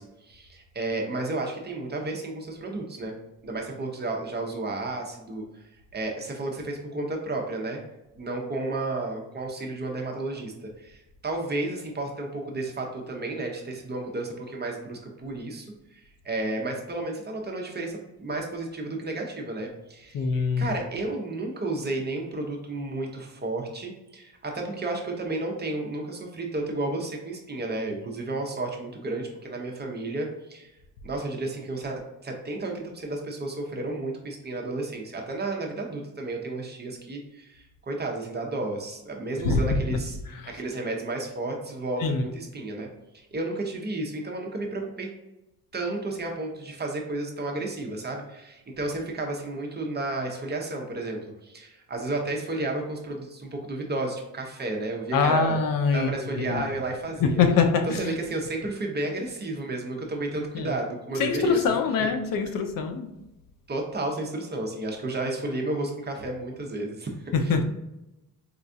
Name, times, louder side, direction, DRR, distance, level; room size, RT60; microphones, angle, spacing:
voice 1, 0.0-3.1 3.4-5.4 5.9-7.8 8.2-15.7 15.9-20.3 20.6-30.7 31.0-40.2 40.5-42.9 43.1-45.1 45.7-55.6 55.9-57.4 58.0-61.8 63.7-67.3, right 2 dB, 30° right, 1 dB, 0.6 m, -32 dB
voice 2, 20.1-20.8 39.4-40.0 40.3-40.6 42.0-42.2 55.1-56.6 57.2-58.2 60.5-60.7 61.2-63.1 67.3-67.6, left 5 dB, 65° left, 6 dB, 0.5 m, -24 dB
4.3 x 2.3 x 2.5 m, 0.93 s
cardioid pair, 120°, 37 cm